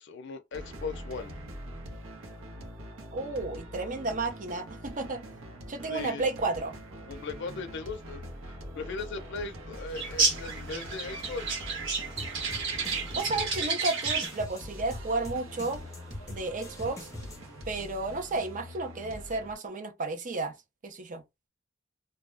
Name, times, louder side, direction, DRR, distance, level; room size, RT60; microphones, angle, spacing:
voice 1, 0.0-1.4 5.9-6.2 7.1-11.6, left 4 dB, 60° left, 0.5 m, -38 dB
sound 1, 0.5-19.5, equal, 85° right, 0.7 m, -44 dB
voice 2, 3.1-5.2 5.7-6.8 13.1-15.8 16.3-17.1 17.7-20.5 20.8-21.2, right 3 dB, 40° right, 0.5 m, -32 dB
sound 2, 9.9-14.4, right 4 dB, 65° right, 1.0 m, -31 dB
sound 3, 12.2-17.7, left 2 dB, 15° left, 0.6 m, -44 dB
2.2 x 2.1 x 3.3 m
head